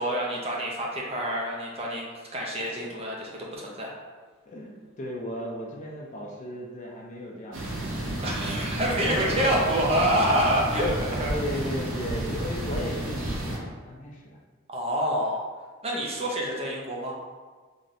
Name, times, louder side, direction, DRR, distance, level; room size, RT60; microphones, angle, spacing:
voice 1, 0.0-3.9 8.2-11.4 14.7-15.4 15.8-17.1, right 1 dB, 30° right, -3 dB, 0.5 m, -27 dB
voice 2, 4.5-7.8 8.3-9.5 11.3-14.2, equal, 35° left, -1 dB, 0.5 m, -36 dB
sound 1, 7.5-13.6, right 1 dB, 70° right, 0.7 m, -31 dB
4.0 x 3.1 x 2.6 m, 1.4 s
head